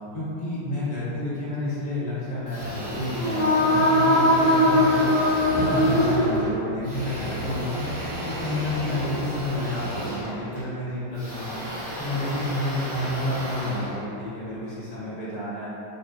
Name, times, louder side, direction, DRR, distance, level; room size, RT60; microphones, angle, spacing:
voice 1, 0.1-5.1 5.5-7.8 8.2-11.6 12.0-15.7, left 1 dB, 60° left, -10 dB, 0.5 m, -30 dB
sound 1, 2.5-14.7, equal, 45° right, 0.6 m, -33 dB
sound 2, 3.0-6.9, left 1 dB, 90° left, 1.4 m, -21 dB
3.0 x 2.2 x 2.3 m, 2.7 s
omnidirectional pair, 2.1 m